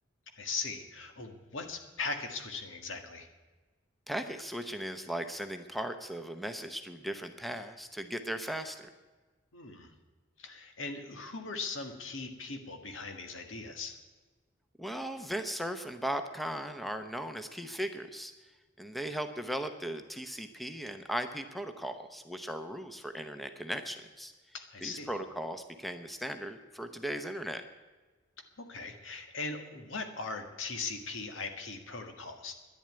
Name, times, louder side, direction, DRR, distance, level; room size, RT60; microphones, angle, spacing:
voice 1, 0.4-3.3 9.5-9.9 10.4-14.0 24.5-25.1 28.6-32.5, left 4 dB, 85° left, 5 dB, 1.8 m, -39 dB
voice 2, 4.1-8.9 14.8-18.3 18.8-24.3 24.8-27.6, equal, ahead, 7 dB, 0.8 m, -37 dB
11.0 x 10.5 x 9.5 m, 1.3 s
head